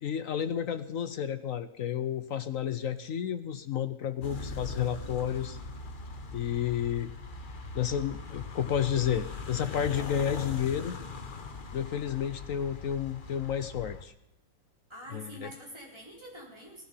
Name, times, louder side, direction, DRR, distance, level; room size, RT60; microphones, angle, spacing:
voice 1, 0.0-5.6 6.3-7.1 7.7-10.9 11.7-14.1 15.1-15.5, left 9 dB, 65° left, 11 dB, 0.8 m, -31 dB
sound 1, 4.2-14.0, left 3 dB, 35° left, 0.9 m, -40 dB
voice 2, 14.9-16.8, equal, 15° right, -3 dB, 4.6 m, -46 dB
18.0 x 11.5 x 5.6 m, 0.88 s
omnidirectional pair, 2.0 m